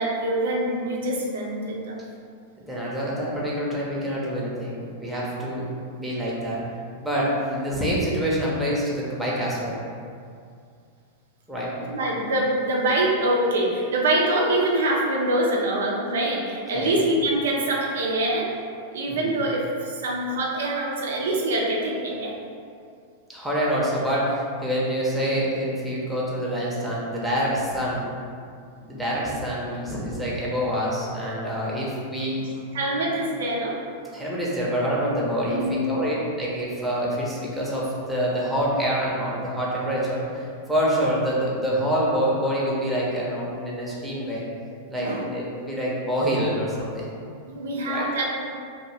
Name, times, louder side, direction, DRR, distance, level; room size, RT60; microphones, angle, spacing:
voice 1, 0.0-2.0 11.9-18.5 18.9-22.3 32.7-33.8 35.5-36.1 45.0-45.2 47.5-48.5, right 1 dB, 85° right, -2 dB, 0.5 m, -24 dB
voice 2, 2.7-6.6 7.0-9.8 11.5-11.7 16.7-17.0 19.1-19.4 23.3-28.1 28.8-32.4 32.9-33.1 34.1-44.4 44.9-47.1 47.8-48.1, equal, ahead, -7 dB, 0.7 m, -26 dB
2.8 x 2.2 x 3.3 m, 2.3 s
hypercardioid pair, 125°, 0 cm